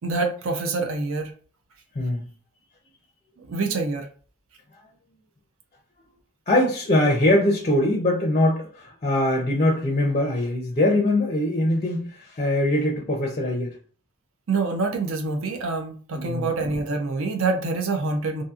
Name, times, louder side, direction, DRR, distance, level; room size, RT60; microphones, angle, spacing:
voice 1, 0.0-1.3 3.4-4.1 14.5-18.4, right 3 dB, 70° right, 4 dB, 0.5 m, -26 dB
voice 2, 6.5-13.8 16.1-16.5, left 1 dB, 30° left, 1 dB, 0.5 m, -22 dB
2.7 x 2.5 x 2.4 m, 0.41 s
head